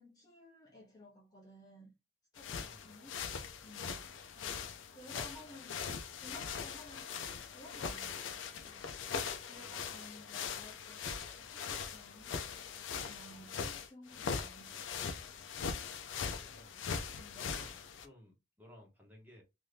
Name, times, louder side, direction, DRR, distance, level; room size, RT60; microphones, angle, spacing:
voice 1, 0.0-1.9 2.3-3.2 3.6-9.0 9.4-11.0 11.4-15.1 17.2-17.5, left 1 dB, 20° left, 0.6 m, -56 dB
sound 1, 2.4-18.1, left 6 dB, 90° left, 0.4 m, -41 dB
voice 2, 2.6-2.9 9.5-10.2 16.2-16.9 17.3-19.4, left 1 dB, 10° right, 0.9 m, -58 dB
2.7 x 2.5 x 3.2 m
head